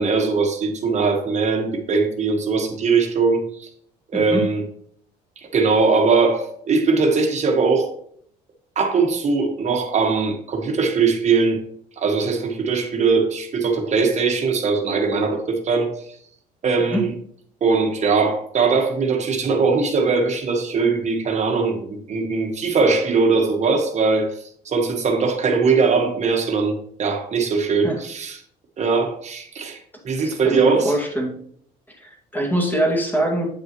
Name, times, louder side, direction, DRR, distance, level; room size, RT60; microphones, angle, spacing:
voice 1, 0.0-3.7 4.1-4.6 5.4-7.9 8.8-11.6 12.0-15.9 16.6-17.1 17.6-28.4 28.8-30.9, right 4 dB, 45° right, 1.3 m, -20 dB
voice 2, 4.1-4.5 16.9-17.0 27.8-28.0 30.2-31.4 32.0-33.5, right 1 dB, 10° left, 1.9 m, -23 dB
8.4 x 5.6 x 3.0 m
cardioid pair, 110°, 17 cm